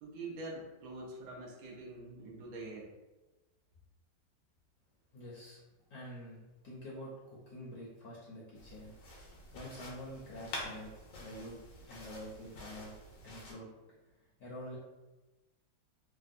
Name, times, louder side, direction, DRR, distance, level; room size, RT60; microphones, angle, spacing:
voice 1, 0.0-2.9, right 2 dB, 65° right, -4 dB, 1.0 m, -45 dB
voice 2, 5.1-5.6 5.9-8.9 9.5-10.9 11.2-11.6 11.9-12.9 13.2-13.7 14.1-14.8, equal, 70° left, -5 dB, 1.0 m, -47 dB
sound 1, 8.6-13.5, left 1 dB, 90° left, 1.4 m, -48 dB
3.4 x 2.1 x 2.5 m, 1.1 s
omnidirectional pair, 1.9 m